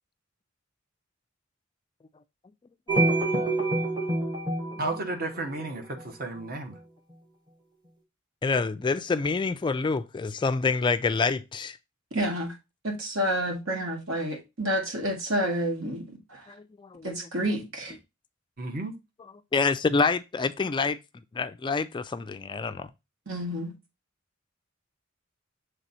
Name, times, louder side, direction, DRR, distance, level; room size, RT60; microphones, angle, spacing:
sound 1, 2.9-6.0, right 2 dB, 20° right, 1.3 m, -27 dB
voice 1, 4.8-6.8 18.6-19.0, right 2 dB, 50° right, 1.1 m, -33 dB
voice 2, 8.4-11.8 16.5-17.2 19.5-21.0 21.3-22.9, left 4 dB, 25° left, 0.3 m, -27 dB
voice 3, 12.1-12.6 12.8-16.5 17.0-18.0 23.3-23.7, equal, 70° right, 2.0 m, -29 dB
7.2 x 3.4 x 4.1 m
head